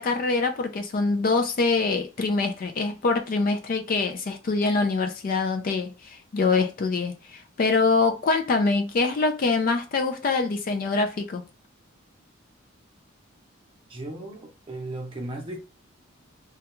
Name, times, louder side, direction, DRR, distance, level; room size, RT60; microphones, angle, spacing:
voice 1, 0.0-11.4, left 3 dB, 45° left, 0.3 m, -24 dB
voice 2, 13.9-15.6, right 2 dB, 25° right, 0.6 m, -36 dB
2.3 x 2.2 x 2.9 m
head